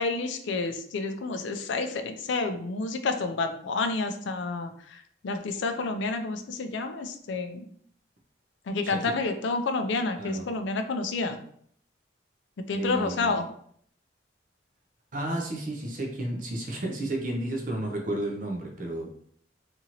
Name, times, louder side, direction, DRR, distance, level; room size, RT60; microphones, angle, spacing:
voice 1, 0.0-7.7 8.7-11.4 12.7-13.4, left 3 dB, 70° left, 7 dB, 0.4 m, -29 dB
voice 2, 8.8-9.2 10.2-10.5 12.7-13.4 15.1-19.1, right 1 dB, 45° right, 2 dB, 0.5 m, -32 dB
2.8 x 2.5 x 2.8 m, 0.63 s
head